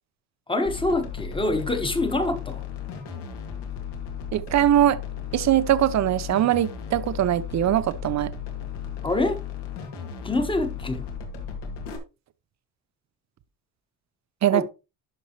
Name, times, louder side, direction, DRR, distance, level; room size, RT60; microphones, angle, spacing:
voice 1, 0.5-2.6 9.0-9.4 10.2-11.0 14.5-14.6, left 2 dB, 10° left, 1.3 m, -25 dB
sound 1, 0.7-12.0, left 7 dB, 70° left, 2.3 m, -35 dB
voice 2, 4.3-5.0 5.3-8.3 14.4-14.6, right 11 dB, 40° right, 0.7 m, -21 dB
12.0 x 5.4 x 3.0 m
cardioid pair, 120°, 42 cm